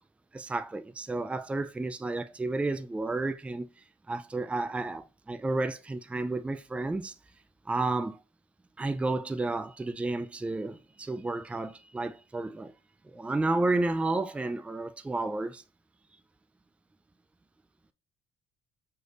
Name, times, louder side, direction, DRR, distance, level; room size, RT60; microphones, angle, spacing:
voice 1, 0.3-3.7 4.1-7.1 7.7-8.2 8.8-12.7 13.1-15.6, right 2 dB, 10° right, 0.4 m, -31 dB
6.3 x 3.3 x 2.5 m
cardioid pair, 95°, 13 cm